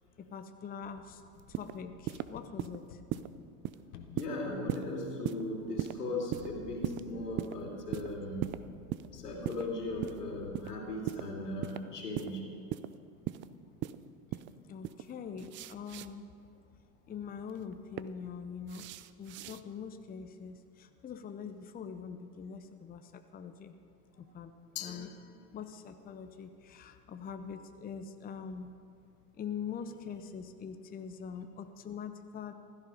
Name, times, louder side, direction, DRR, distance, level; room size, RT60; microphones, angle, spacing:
voice 1, 0.2-1.2 1.5-3.0 14.3-14.4 14.7-16.3 17.1-18.9 19.2-23.7 24.2-24.5 24.8-25.1 25.5-28.7 29.4-32.5, left 6 dB, 20° left, 8 dB, 0.7 m, -43 dB
sound 1, 0.9-5.5 6.3-11.1, left 6 dB, 70° left, 1.4 m, -54 dB
sound 2, 1.4-1.7 2.1-2.3 2.6-2.8 3.1-3.3 3.6-3.8 4.2-4.4 4.7-4.9 5.2-5.4 5.8-5.9 6.3-6.5 6.8-7.0 7.4-7.5 7.9-8.1 8.4-8.6 8.9-9.1 9.4-9.7 10.0-10.2 10.5-10.7 11.1-11.2 11.6-11.8 12.1-12.3 12.7-12.9 13.3-13.5 13.8-14.0 14.3-14.5 14.8-15.0 15.4-16.1 17.5-18.0 18.7-19.6, right 15 dB, 30° right, 0.4 m, -37 dB
voice 2, 4.1-8.4 9.1-12.4 24.8-25.0, left 2 dB, 85° left, 0 dB, 3.1 m, -38 dB
Glass, 24.8-26.0, left 13 dB, 50° left, 1.1 m, -46 dB
15.5 x 13.0 x 5.0 m, 2.5 s
hypercardioid pair, 85°, 46 cm